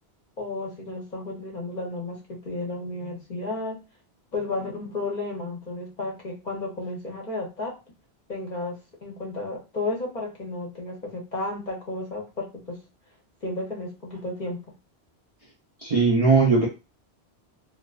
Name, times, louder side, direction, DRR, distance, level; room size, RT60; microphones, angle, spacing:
voice 1, 0.4-3.8 4.3-7.8 8.3-12.8 13.4-14.6, left 2 dB, 50° left, -1 dB, 0.6 m, -33 dB
voice 2, 15.8-16.7, right 4 dB, 55° right, -2 dB, 0.4 m, -19 dB
2.3 x 2.3 x 2.3 m, 0.29 s
omnidirectional pair, 1.1 m